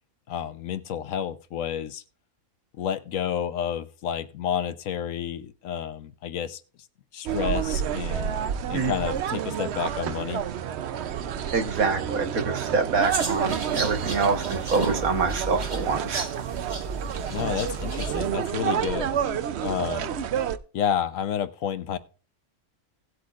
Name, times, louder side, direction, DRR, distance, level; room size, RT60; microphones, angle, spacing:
voice 1, 0.3-2.0 2.8-6.6 7.1-8.4 8.7-10.4 17.3-19.2 19.6-20.1 20.7-22.0, left 8 dB, 70° left, 13 dB, 1.1 m, -30 dB
sound 1, 7.3-20.6, right 9 dB, 60° right, 0.8 m, -29 dB
voice 2, 11.5-16.3, right 4 dB, 80° right, 7 dB, 1.7 m, -26 dB
sound 2, 13.0-18.3, right 2 dB, 35° right, 1.3 m, -33 dB
17.5 x 8.0 x 2.4 m, 0.35 s
omnidirectional pair, 1.5 m